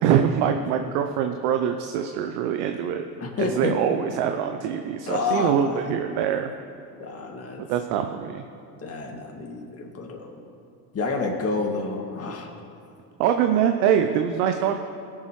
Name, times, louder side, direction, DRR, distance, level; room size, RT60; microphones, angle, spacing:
voice 1, 0.0-3.0 3.4-6.5 7.6-8.4 13.2-14.8, right 8 dB, 65° right, 6 dB, 0.8 m, -24 dB
voice 2, 3.2-3.7 5.1-5.8 7.0-7.6 8.8-10.4 10.9-12.5, left 3 dB, 30° left, 0 dB, 2.2 m, -29 dB
21.0 x 7.4 x 3.3 m, 2.6 s
hypercardioid pair, 75°, 47 cm